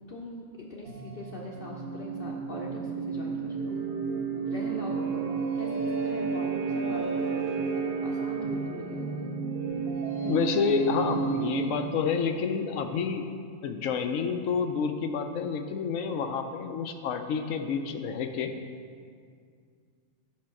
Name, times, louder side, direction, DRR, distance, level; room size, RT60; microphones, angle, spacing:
voice 1, 0.1-0.4 0.7-3.8 4.5-5.7 6.0-7.5 8.0-9.1, left 1 dB, 50° left, -3 dB, 0.8 m, -40 dB
sound 1, 0.9-12.2, right 5 dB, 40° right, 1.2 m, -31 dB
voice 2, 10.2-13.3 13.6-18.5, left 6 dB, 75° left, 6 dB, 1.0 m, -29 dB
7.5 x 5.2 x 5.8 m, 2.2 s
omnidirectional pair, 1.4 m